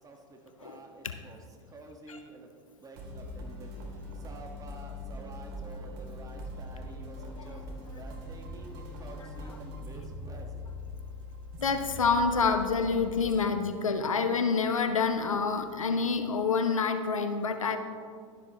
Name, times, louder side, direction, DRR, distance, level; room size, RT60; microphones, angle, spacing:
voice 1, 0.0-1.4 1.7-2.5 2.8-3.7 4.2-10.7, right 2 dB, 20° right, 2 dB, 1.6 m, -49 dB
sound 1, 3.0-16.3, left 1 dB, 55° right, 2.6 m, -43 dB
voice 2, 9.2-9.6 11.6-17.8, left 5 dB, 85° left, 8 dB, 0.9 m, -28 dB
12.0 x 11.5 x 3.1 m, 2.2 s
hypercardioid pair, 95°, 17 cm